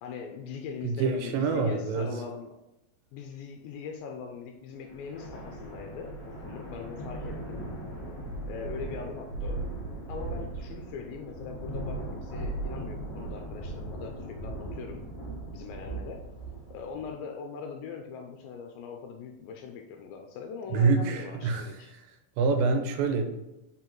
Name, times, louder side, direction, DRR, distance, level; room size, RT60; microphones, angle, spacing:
voice 1, 0.0-2.6 3.1-7.6 8.4-9.6 10.1-15.1 15.5-16.3 16.7-21.9, left 6 dB, 85° left, 3 dB, 2.4 m, -41 dB
voice 2, 0.8-2.1 20.7-21.7 22.4-23.4, right 4 dB, 85° right, 6 dB, 2.6 m, -26 dB
sound 1, 4.9-17.1, right 2 dB, 40° left, 2.0 m, -38 dB
5.7 x 4.5 x 3.9 m, 0.94 s
omnidirectional pair, 4.1 m